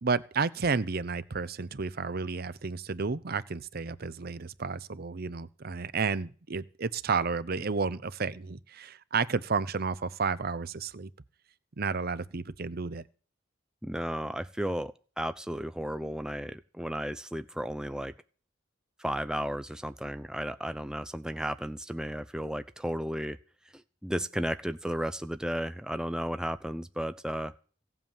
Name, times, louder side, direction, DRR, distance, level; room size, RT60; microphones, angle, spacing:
voice 1, 0.0-11.1 11.8-13.0, right 4 dB, 55° right, 0.7 m, -31 dB
voice 2, 13.8-18.1 19.0-23.4 23.7-27.5, equal, 5° right, 0.6 m, -34 dB
16.5 x 8.0 x 7.3 m
head